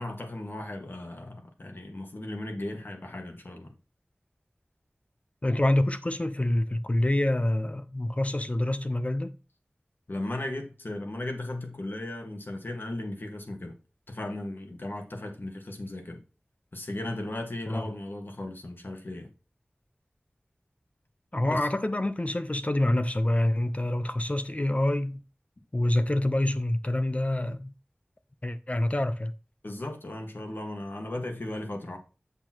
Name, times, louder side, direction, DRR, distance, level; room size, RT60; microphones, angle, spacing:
voice 1, 0.0-3.7 10.1-13.7 14.1-16.2 16.7-19.3 21.5-21.6 29.6-32.0, left 1 dB, 65° left, 1.7 m, -36 dB
voice 2, 5.4-9.3 17.7-17.9 21.3-25.2 25.7-27.7 28.4-29.3, left 1 dB, 35° left, 0.8 m, -26 dB
8.0 x 6.9 x 3.0 m
wide cardioid pair, 40°, 4 cm